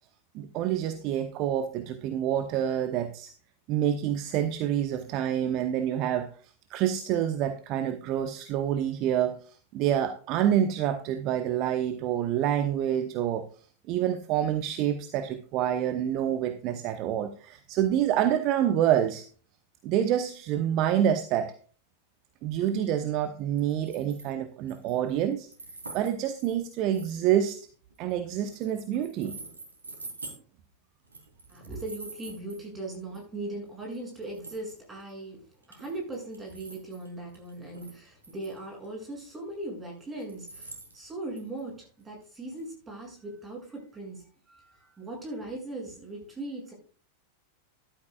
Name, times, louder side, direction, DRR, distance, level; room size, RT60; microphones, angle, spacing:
voice 1, 0.3-3.3 3.7-13.5 13.9-19.2 19.8-21.5 22.4-25.5 25.9-27.6 28.0-29.4, right 10 dB, 40° right, 9 dB, 0.9 m, -27 dB
sound 1, 23.6-24.3 24.7-25.1 25.5-28.1 28.5-30.4 31.0-32.6 33.1-33.2 33.9-34.0 34.2-35.1 35.6-37.1 37.3-38.6 38.8-38.9 39.2-39.3 40.0-41.8 42.0-42.1 42.6-42.7, right 3 dB, 75° right, 3.0 m, -46 dB
voice 2, 31.5-46.7, right 2 dB, 15° right, 0 dB, 7.1 m, -39 dB
14.5 x 12.0 x 2.4 m, 0.40 s
figure-of-eight pair, 90°, 0 cm